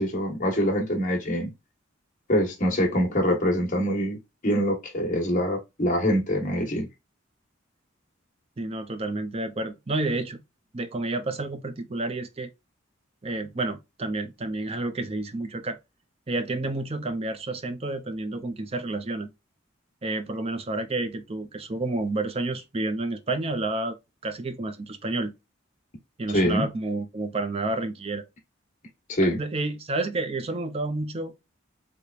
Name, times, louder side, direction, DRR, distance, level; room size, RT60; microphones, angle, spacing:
voice 1, 0.0-1.5 2.3-6.9 26.3-26.7 29.1-29.4, equal, 40° left, 1.2 m, -24 dB
voice 2, 8.6-10.4 10.7-12.5 13.2-15.8 16.3-19.3 20.0-24.0 24.2-25.3 26.2-28.2 29.2-31.3, right 2 dB, 30° right, 0.5 m, -30 dB
3.4 x 3.3 x 2.4 m
head